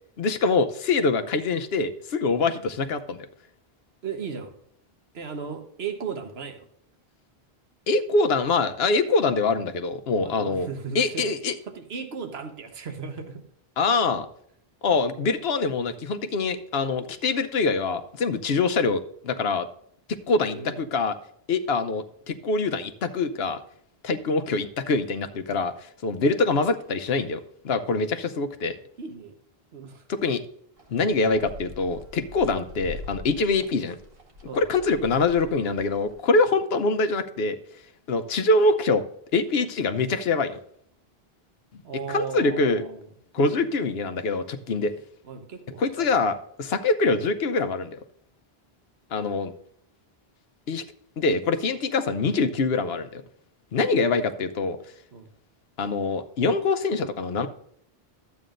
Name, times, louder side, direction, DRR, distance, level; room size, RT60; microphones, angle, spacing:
voice 1, 0.2-3.2 7.9-10.7 10.9-11.6 13.8-14.3 14.8-19.7 20.3-21.1 21.5-23.6 24.0-27.4 27.6-28.8 30.1-30.4 30.9-34.0 34.5-37.6 38.1-39.0 39.3-40.6 41.7-41.8 42.1-42.8 43.3-44.9 45.8-48.0 49.1-49.5 50.7-50.8 51.2-53.2 53.7-54.8 55.8-57.5, left 3 dB, 75° left, 9 dB, 1.0 m, -24 dB
voice 2, 4.0-4.5 5.1-6.7 10.2-11.2 11.7-13.4 20.4-20.8 29.0-29.4 29.7-30.0 34.4-34.7 41.8-43.1 43.4-43.7 45.2-46.1 55.1-55.3, right 5 dB, 85° right, 6 dB, 1.4 m, -36 dB
sound 1, 30.8-36.2, left 2 dB, 65° right, 2.0 m, -44 dB
12.5 x 8.4 x 2.5 m, 0.66 s
omnidirectional pair, 1.0 m